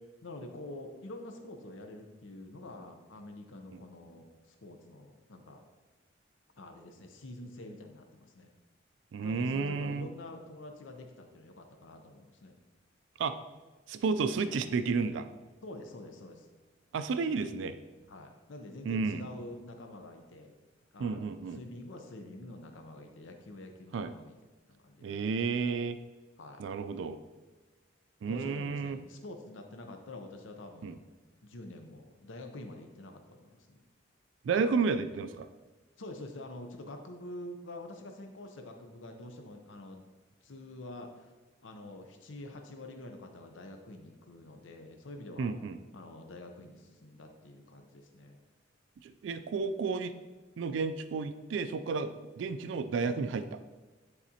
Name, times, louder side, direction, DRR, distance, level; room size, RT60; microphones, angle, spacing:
voice 1, 0.2-5.7 6.6-8.5 9.2-12.5 15.6-16.5 18.1-20.5 20.9-24.3 24.7-25.2 26.4-26.6 28.3-31.0 31.4-33.8 36.0-40.1 40.4-41.3 41.6-45.5 45.9-48.4, left 1 dB, 85° left, 4 dB, 0.7 m, -47 dB
voice 2, 9.1-10.1 13.2-13.4 13.9-15.3 16.9-17.8 18.8-19.3 21.0-21.6 23.9-24.1 25.0-26.0 26.6-27.2 28.2-29.0 30.8-31.0 34.4-35.5 45.4-45.8 49.0-50.1 50.6-53.6, right 4 dB, 75° right, 11 dB, 0.3 m, -32 dB
9.8 x 4.1 x 2.8 m, 1.3 s
head